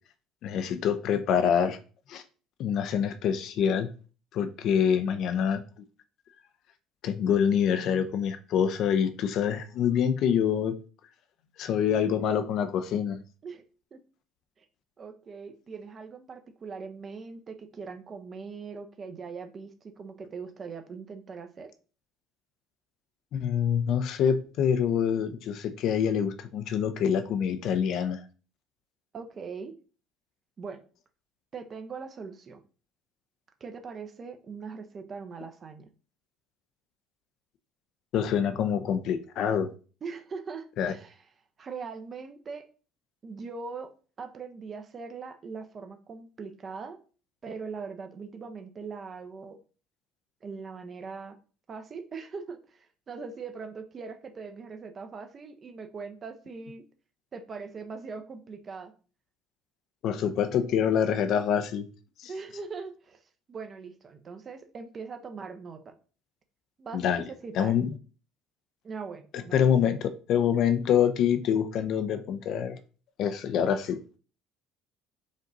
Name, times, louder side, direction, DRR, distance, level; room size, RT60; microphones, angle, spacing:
voice 1, 0.4-1.8 2.1-2.2 2.6-3.9 4.3-5.6 7.0-10.8 11.6-13.2 23.3-28.2 38.1-39.7 40.8-40.9 60.0-61.9 62.2-62.3 66.9-67.2 67.5-67.9 69.5-72.8 73.2-74.0, left 8 dB, 60° left, 0.6 m, -26 dB
voice 2, 15.0-21.7 29.1-29.7 30.6-30.8 31.5-32.6 33.6-35.9 40.0-41.2 41.6-42.7 43.2-43.9 44.2-47.0 47.4-49.6 50.4-51.4 51.7-56.8 57.3-58.9 62.3-63.2 63.5-65.9 66.8-67.8 68.8-70.0, right 5 dB, 40° right, 0.8 m, -41 dB
5.1 x 2.6 x 4.0 m
hypercardioid pair, 70°, 0 cm